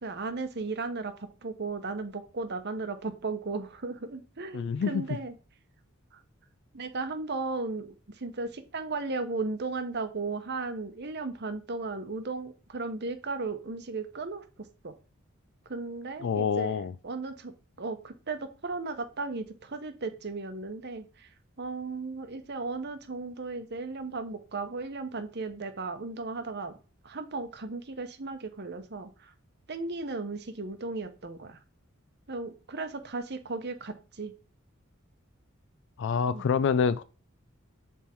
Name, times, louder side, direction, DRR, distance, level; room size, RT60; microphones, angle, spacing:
voice 1, 0.0-5.4 6.1-6.2 6.7-14.4 14.8-14.9 15.7-17.5 17.8-21.3 21.6-26.7 27.0-29.3 29.7-31.6 32.3-34.3 36.3-36.4, right 3 dB, 55° right, 1.0 m, -35 dB
voice 2, 4.5-5.0 16.2-16.9 36.0-37.0, left 6 dB, 60° left, 0.3 m, -26 dB
7.3 x 3.6 x 4.4 m
head